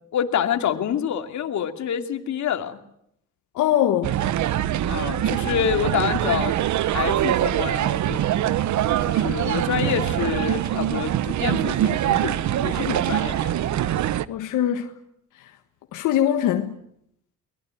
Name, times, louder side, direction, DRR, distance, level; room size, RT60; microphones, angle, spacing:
voice 1, 0.1-2.8 4.9-6.5 6.9-8.2 9.1-13.5, left 8 dB, 70° left, 2.7 m, -27 dB
voice 2, 3.5-4.1 14.3-14.9 15.9-16.8, left 11 dB, 90° left, 1.6 m, -22 dB
sound 1, 4.0-14.3, right 12 dB, 70° right, 1.0 m, -23 dB
23.5 x 21.0 x 9.7 m
cardioid pair, 90°, 30 cm